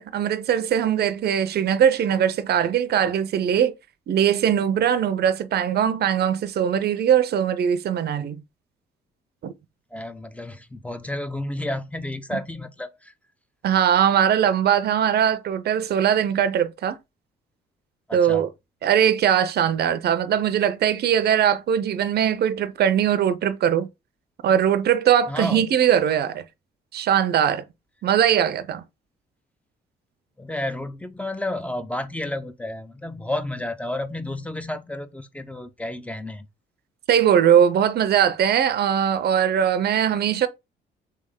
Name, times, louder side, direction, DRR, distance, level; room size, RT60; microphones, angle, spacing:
voice 1, 0.0-3.7 4.1-8.4 9.4-9.5 12.3-12.4 13.6-17.0 18.1-18.5 18.8-23.9 24.4-26.4 26.9-27.6 28.0-28.8 37.1-40.5, right 9 dB, 55° right, 0.5 m, -20 dB
voice 2, 9.9-13.1 18.1-18.5 25.3-25.7 30.4-36.5, left 1 dB, 5° left, 0.4 m, -31 dB
3.3 x 3.3 x 3.6 m
cardioid pair, 90°, 20 cm